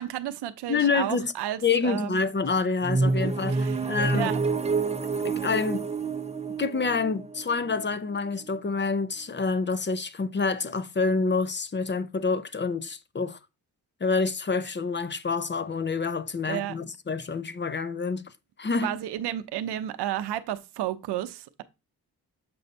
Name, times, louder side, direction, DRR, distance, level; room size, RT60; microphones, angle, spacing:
voice 1, 0.0-2.2 3.2-4.4 16.5-16.8 18.8-21.6, right 12 dB, 90° right, 0.7 m, -32 dB
voice 2, 0.7-1.3 1.6-3.6 3.9-4.3 5.2-5.9 6.6-13.4 14.0-18.2 18.6-19.0, left 4 dB, 30° left, 0.7 m, -27 dB
sound 1, 2.8-8.6, right 3 dB, 15° right, 0.6 m, -28 dB
6.9 x 2.6 x 5.3 m
cardioid pair, 60°, 39 cm